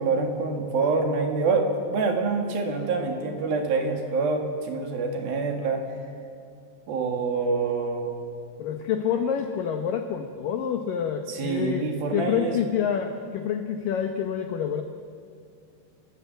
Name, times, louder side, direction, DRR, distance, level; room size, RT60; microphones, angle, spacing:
voice 1, 0.0-5.9 6.9-8.1 11.3-12.6, right 4 dB, 60° right, 3 dB, 3.4 m, -26 dB
voice 2, 8.6-14.8, left 8 dB, 85° left, 6 dB, 1.9 m, -27 dB
30.0 x 14.0 x 8.2 m, 2.4 s
omnidirectional pair, 5.4 m